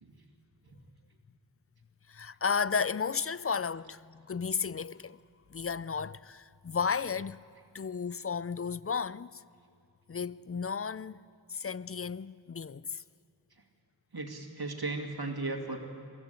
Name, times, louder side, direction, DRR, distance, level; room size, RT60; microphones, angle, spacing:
voice 1, 2.1-5.2 5.5-7.4 7.7-9.4 10.1-11.2 11.5-13.0, left 6 dB, 35° left, 0.4 m, -33 dB
voice 2, 14.1-15.8, right 2 dB, 60° right, 2.4 m, -36 dB
22.0 x 15.0 x 8.4 m
wide cardioid pair, 60°, 42 cm